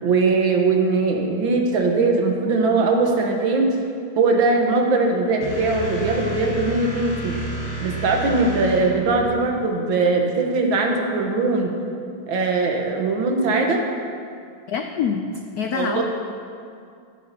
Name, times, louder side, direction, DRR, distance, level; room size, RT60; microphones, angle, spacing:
voice 1, 0.0-3.7 4.2-7.3 7.8-11.7 12.3-13.9 15.7-16.0, right 3 dB, 75° right, 2 dB, 1.8 m, -20 dB
sound 1, 5.4-9.3, equal, 30° left, 1.2 m, -31 dB
voice 2, 14.7-16.0, left 6 dB, 85° left, 4 dB, 0.8 m, -25 dB
13.5 x 10.0 x 2.8 m, 2.3 s
omnidirectional pair, 2.3 m